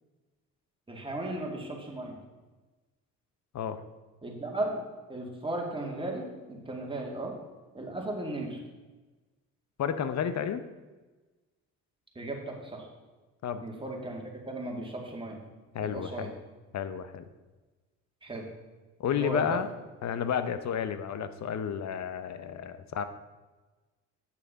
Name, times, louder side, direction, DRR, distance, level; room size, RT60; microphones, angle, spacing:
voice 1, 0.9-2.2 4.2-4.8 5.1-7.3 7.7-8.6 12.2-12.9 13.6-15.4 15.8-16.3 18.2-18.4 19.2-19.6, right 2 dB, 15° right, 0 dB, 2.3 m, -36 dB
voice 2, 9.8-10.6 13.4-13.6 15.7-16.4 16.7-17.2 19.0-19.7 20.0-23.0, left 8 dB, 55° left, 11 dB, 0.8 m, -31 dB
8.7 x 6.6 x 5.2 m, 1.2 s
supercardioid pair, 75°, 34 cm